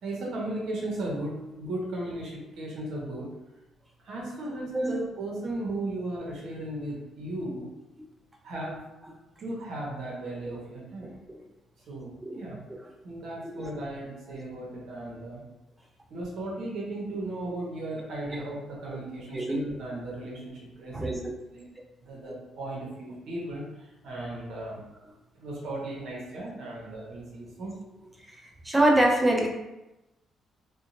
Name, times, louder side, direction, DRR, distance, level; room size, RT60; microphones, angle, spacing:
voice 1, 0.0-3.3 4.0-7.7 8.4-8.8 9.4-11.2 11.9-12.6 13.0-15.4 16.1-21.2 21.5-21.6 22.0-24.8 25.3-27.7, right 1 dB, 70° right, -4 dB, 0.9 m, -36 dB
voice 2, 20.9-21.3 28.6-29.5, right 1 dB, 15° right, -1 dB, 0.6 m, -24 dB
2.8 x 2.3 x 2.6 m, 0.97 s
supercardioid pair, 60°, 0 cm